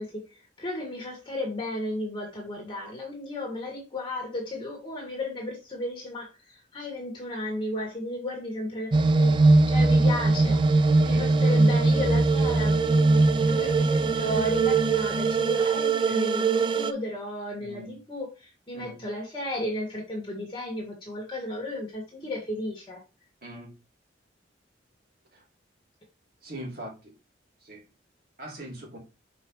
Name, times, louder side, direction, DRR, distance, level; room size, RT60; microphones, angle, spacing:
voice 1, 0.0-9.4 9.7-13.1 13.4-23.0, left 1 dB, 25° left, -1 dB, 1.7 m, -34 dB
sound 1, 8.9-16.9, right 3 dB, 25° right, 0.3 m, -21 dB
voice 2, 11.0-11.4 17.6-17.9 18.7-19.0 23.4-23.7 26.4-26.9 27.6-27.8 28.4-29.0, right 1 dB, 55° right, -2 dB, 3.3 m, -40 dB
6.3 x 5.0 x 3.1 m, 0.28 s
head